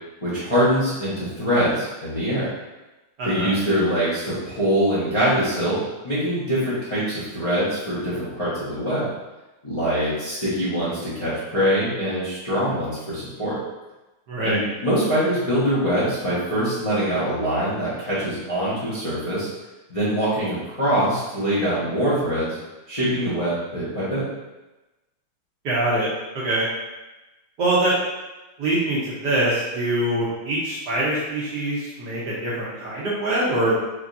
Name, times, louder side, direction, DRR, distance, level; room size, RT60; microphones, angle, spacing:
voice 1, 0.2-2.5 3.2-5.8 6.0-9.1 9.6-13.6 14.4-19.5 19.9-22.6 22.9-24.2, equal, 25° left, -11 dB, 0.8 m, -23 dB
voice 2, 14.3-14.6 25.6-26.1 26.3-26.7 27.6-27.9 28.6-33.8, right 1 dB, 60° right, -7 dB, 1.2 m, -23 dB
4.9 x 3.0 x 2.6 m, 1.1 s
omnidirectional pair, 2.3 m